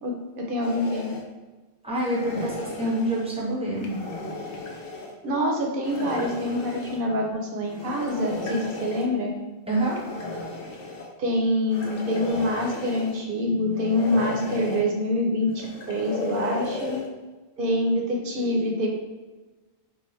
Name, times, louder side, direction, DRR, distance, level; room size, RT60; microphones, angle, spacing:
voice 1, 0.0-1.1 5.2-9.3 11.2-17.0 17.6-18.9, left 1 dB, 55° right, 1 dB, 0.8 m, -26 dB
sound 1, 0.6-1.2 2.0-3.3 3.7-5.1 5.8-7.0 7.7-9.1 9.8-11.1 11.7-13.2 13.7-14.8 15.5-17.1, left 3 dB, 60° left, 0.8 m, -35 dB
voice 2, 1.8-4.0 9.7-10.0, right 1 dB, 5° right, -5 dB, 0.8 m, -26 dB
4.6 x 2.5 x 3.1 m, 1.2 s
omnidirectional pair, 1.1 m